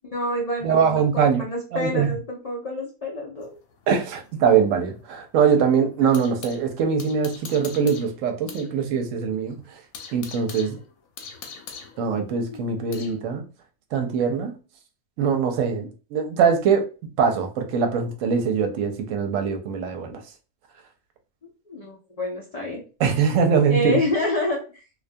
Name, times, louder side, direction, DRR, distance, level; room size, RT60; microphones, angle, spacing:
voice 1, 0.1-3.5 12.5-12.6 12.9-13.0 21.7-22.8 23.7-24.8, left 1 dB, 70° left, -2 dB, 0.3 m, -28 dB
voice 2, 0.6-1.4 1.7-2.1 3.9-9.6 10.1-10.8 12.0-13.4 13.9-14.5 15.2-16.8 17.2-20.2 23.0-24.0, right 6 dB, 70° right, 5 dB, 0.9 m, -22 dB
sound 1, 3.4-6.6 7.0-8.7 9.0-9.1 9.5-13.2, left 6 dB, 85° left, 1.0 m, -42 dB
2.4 x 2.2 x 2.5 m, 0.34 s
omnidirectional pair, 1.5 m